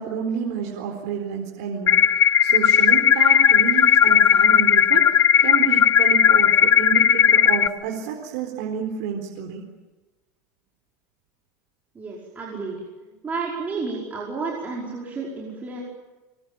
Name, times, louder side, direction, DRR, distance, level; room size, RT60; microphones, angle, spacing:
voice 1, 0.0-2.0 2.4-5.1 5.4-9.6, right 7 dB, 70° right, 0 dB, 4.4 m, -29 dB
sound 1, 1.9-7.7, left 8 dB, 30° left, 0.8 m, -16 dB
voice 2, 11.9-15.8, right 4 dB, 20° right, -4 dB, 5.2 m, -31 dB
25.5 x 23.0 x 9.1 m, 1.2 s
supercardioid pair, 150°, 9 cm